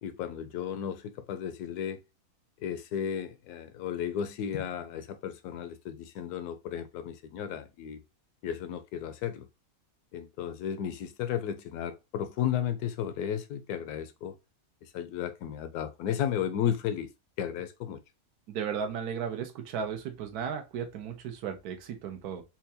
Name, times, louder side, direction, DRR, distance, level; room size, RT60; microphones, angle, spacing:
voice 1, 0.0-2.0 2.6-8.0 8.4-9.5 10.1-14.4 14.8-17.1 17.4-18.0, left 9 dB, 80° left, 1.1 m, -34 dB
voice 2, 18.5-22.4, right 7 dB, 80° right, 1.3 m, -35 dB
4.4 x 2.3 x 2.7 m
omnidirectional pair, 1.6 m